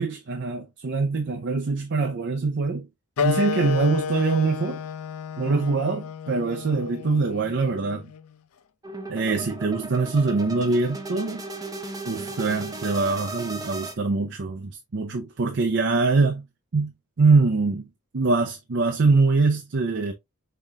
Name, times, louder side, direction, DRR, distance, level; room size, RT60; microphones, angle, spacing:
voice 1, 0.0-2.9 3.2-4.8 5.4-8.0 9.1-11.4 12.0-16.4 16.7-17.9 18.1-20.1, right 3 dB, 55° right, 0.6 m, -23 dB
Wind instrument woodwind instrument, 3.2-8.3, left 6 dB, 75° left, 0.5 m, -31 dB
sound 1, 8.8-13.9, right 2 dB, 15° right, 0.7 m, -36 dB
5.6 x 3.8 x 2.3 m
head